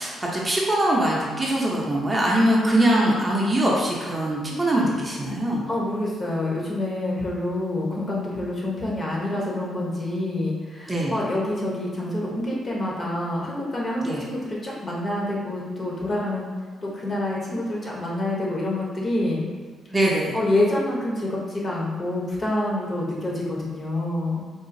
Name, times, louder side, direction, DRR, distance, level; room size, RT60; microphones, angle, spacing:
voice 1, 0.0-5.6 10.9-11.2 14.0-14.2 19.9-20.3, right 1 dB, 20° right, -4 dB, 0.6 m, -22 dB
voice 2, 5.7-16.5 16.8-19.4 20.3-24.4, left 1 dB, 40° left, -4 dB, 0.9 m, -27 dB
3.8 x 2.4 x 2.6 m, 1.5 s
cardioid pair, 90°, 0 cm